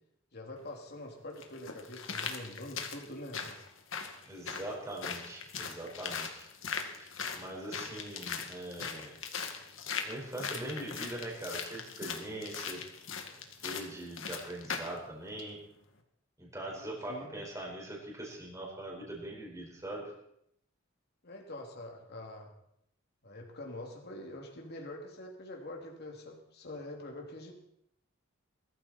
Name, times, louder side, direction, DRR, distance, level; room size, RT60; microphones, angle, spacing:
voice 1, 0.3-3.6 17.1-17.4 21.2-22.5 23.2-27.5, left 1 dB, 55° left, 0 dB, 3.0 m, -45 dB
sound 1, 0.6-0.7 1.4-15.0 15.4-15.5, left 6 dB, 70° left, 2.1 m, -40 dB
voice 2, 4.3-6.5 7.0-9.1 10.0-12.8 13.6-15.6 16.4-20.0, right 1 dB, 15° right, -2 dB, 5.1 m, -42 dB
21.5 x 14.0 x 4.4 m, 0.74 s
head